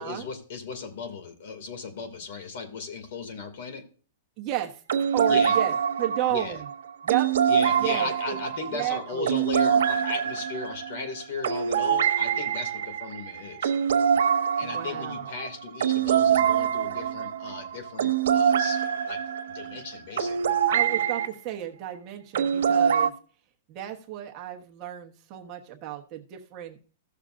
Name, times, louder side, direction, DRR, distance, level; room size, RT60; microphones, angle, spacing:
voice 1, 0.0-3.9 5.3-5.6 6.3-6.6 7.5-13.7 14.6-19.2 19.5-20.6, left 5 dB, 55° left, 8 dB, 2.3 m, -36 dB
voice 2, 4.4-4.8 5.1-6.7 7.0-7.3 7.8-8.4 8.7-9.4 14.6-15.4 20.7-23.1 23.7-26.8, right 13 dB, 25° right, 1 dB, 1.1 m, -32 dB
sound 1, 4.9-21.3 22.3-23.1, right 8 dB, 85° right, 1.1 m, -25 dB
16.0 x 6.6 x 2.5 m, 0.39 s
hypercardioid pair, 165°, 0 cm